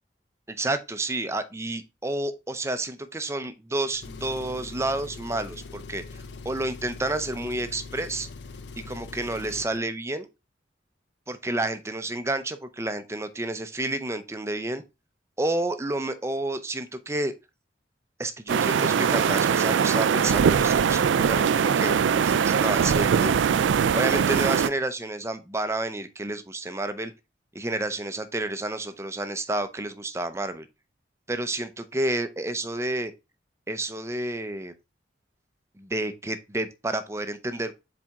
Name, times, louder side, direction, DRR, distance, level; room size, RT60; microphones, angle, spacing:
voice 1, 0.5-8.3 8.9-10.3 11.3-14.8 15.4-17.3 18.2-23.4 23.9-27.1 27.5-30.7 31.3-33.1 33.7-34.7 35.8-37.7, right 2 dB, 15° right, 0.6 m, -30 dB
Engine, 3.9-9.8, left 4 dB, 75° left, 0.6 m, -42 dB
sound 1, 18.5-24.7, right 7 dB, 90° right, 0.4 m, -21 dB
7.3 x 4.2 x 3.6 m
head